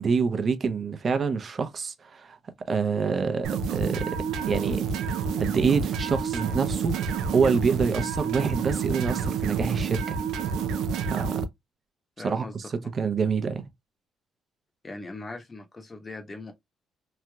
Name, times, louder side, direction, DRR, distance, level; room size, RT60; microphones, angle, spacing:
voice 1, 0.0-2.4 2.7-4.2 4.5-4.9 5.4-7.0 7.3-10.2 11.1-11.4 12.2-13.6, right 5 dB, 40° right, 0.7 m, -26 dB
sound 1, 3.4-11.5, right 6 dB, 85° right, 0.6 m, -29 dB
voice 2, 12.2-12.7 14.8-16.5, left 2 dB, 25° left, 1.0 m, -40 dB
3.2 x 2.8 x 2.3 m
cardioid pair, 105°, 0 cm